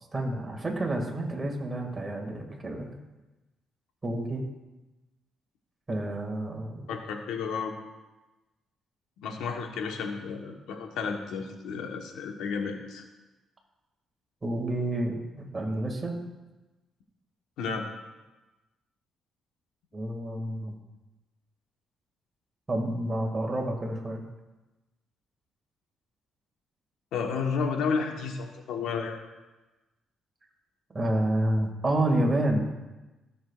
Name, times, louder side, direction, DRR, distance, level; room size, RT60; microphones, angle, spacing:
voice 1, 0.1-2.9 4.0-4.4 5.9-6.9 14.4-16.2 19.9-20.8 22.7-24.2 30.9-32.7, right 1 dB, 25° right, 1 dB, 2.1 m, -29 dB
voice 2, 6.9-7.7 9.2-13.0 17.6-17.9 27.1-29.2, left 5 dB, 85° left, 3 dB, 1.1 m, -32 dB
16.0 x 7.1 x 2.4 m, 1.1 s
cardioid pair, 90°, 0 cm